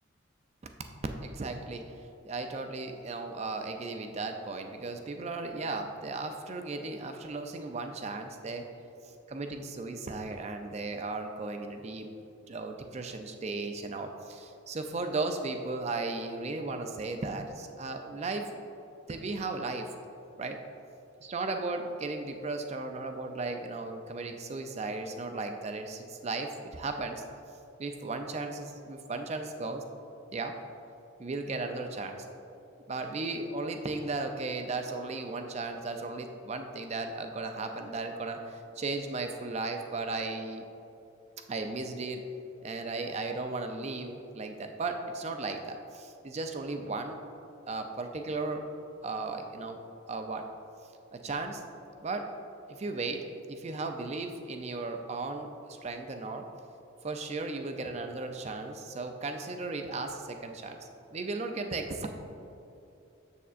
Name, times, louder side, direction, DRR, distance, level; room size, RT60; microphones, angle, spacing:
voice 1, 1.2-1.8 2.2-8.7 9.0-12.1 12.5-18.5 19.1-19.9 20.4-20.6 21.2-27.2 27.8-29.8 30.3-30.6 31.2-32.3 32.9-40.7 41.5-42.3 42.6-47.2 47.7-48.7 49.0-49.8 50.1-50.5 51.1-51.6 52.0-52.3 52.7-56.5 57.0-62.1, right 3 dB, 30° right, 5 dB, 0.4 m, -36 dB
7.1 x 6.9 x 2.5 m, 2.8 s
head